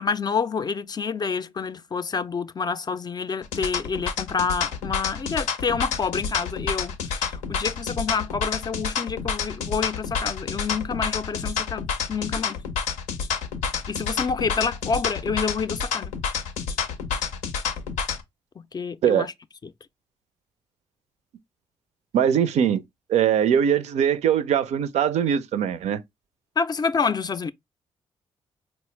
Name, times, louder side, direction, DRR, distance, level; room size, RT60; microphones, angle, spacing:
voice 1, 0.0-12.7 13.9-16.1 18.7-19.3 19.6-19.7 26.6-27.5, left 5 dB, 35° left, 0.4 m, -28 dB
sound 1, 3.4-18.2, left 6 dB, 80° left, 0.6 m, -29 dB
voice 2, 22.1-22.8 23.1-26.0, right 8 dB, 65° right, 0.4 m, -21 dB
4.2 x 2.0 x 3.1 m
hypercardioid pair, 45°, 12 cm